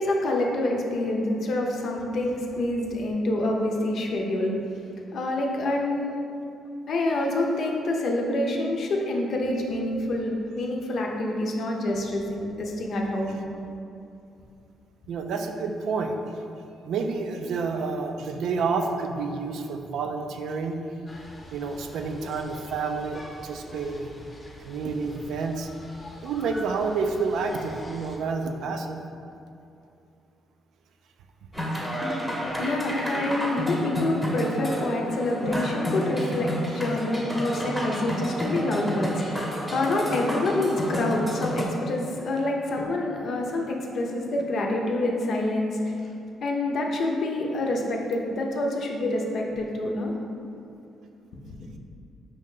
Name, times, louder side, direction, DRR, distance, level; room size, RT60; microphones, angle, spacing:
voice 1, 0.0-4.6 5.1-6.2 6.9-13.4 32.6-46.1 46.4-50.1 51.4-51.6, left 1 dB, 60° left, 0 dB, 0.6 m, -27 dB
voice 2, 15.1-16.1 16.8-20.8 21.5-24.1 24.6-25.7 26.2-29.0, right 4 dB, 75° right, 5 dB, 0.4 m, -29 dB
sound 1, 21.1-28.2, left 1 dB, 25° left, 0.7 m, -45 dB
sound 2, 31.5-41.6, equal, 5° right, 0.8 m, -30 dB
5.1 x 2.7 x 3.7 m, 2.6 s
cardioid pair, 90°, 0 cm